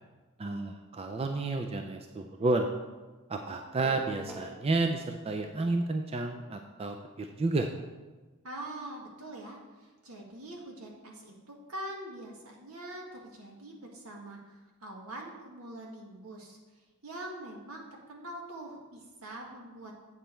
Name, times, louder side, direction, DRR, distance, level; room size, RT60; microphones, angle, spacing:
voice 1, 0.4-2.7 3.3-7.7, right 2 dB, 25° right, 5 dB, 0.4 m, -31 dB
sound 1, 3.8-4.5, equal, ahead, 0.9 m, -42 dB
voice 2, 8.4-16.6 17.0-19.9, right 1 dB, 75° right, 0 dB, 1.7 m, -44 dB
8.1 x 7.3 x 4.4 m, 1.2 s
head